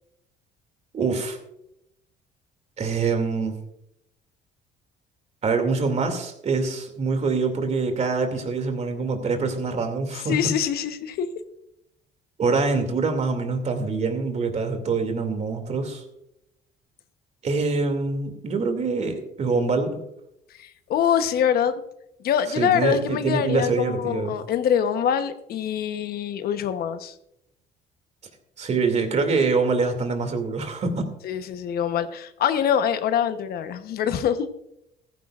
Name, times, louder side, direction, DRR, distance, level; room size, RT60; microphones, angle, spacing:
voice 1, 0.9-1.4 2.8-3.6 5.4-10.4 12.4-16.0 17.4-20.0 22.6-24.4 28.6-31.1, right 4 dB, 40° right, 6 dB, 2.6 m, -25 dB
voice 2, 10.3-11.3 20.6-21.8 22.2-27.1 31.2-34.5, left 8 dB, 65° left, 9 dB, 1.0 m, -24 dB
15.0 x 15.0 x 2.5 m, 0.80 s
cardioid pair, 110°, 17 cm